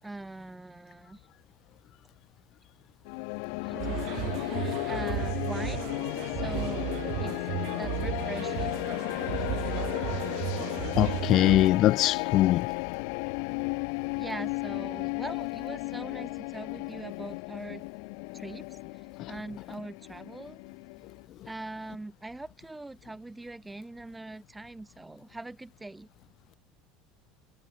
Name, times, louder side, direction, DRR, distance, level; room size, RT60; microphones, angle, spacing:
voice 1, 0.0-1.2 3.6-5.9 6.4-6.9 7.2-7.4 7.8-8.9 14.2-17.8 18.3-18.8 19.3-20.6 21.5-26.1, right 2 dB, 10° right, 3.9 m, -42 dB
sound 1, 3.0-21.3, left 40 dB or more, 75° left, 1.3 m, -34 dB
sound 2, 3.8-11.7, right 21 dB, 65° right, 3.3 m, -34 dB
voice 2, 11.0-12.7, left 14 dB, 55° left, 0.4 m, -22 dB
supercardioid pair, 100°, 0 cm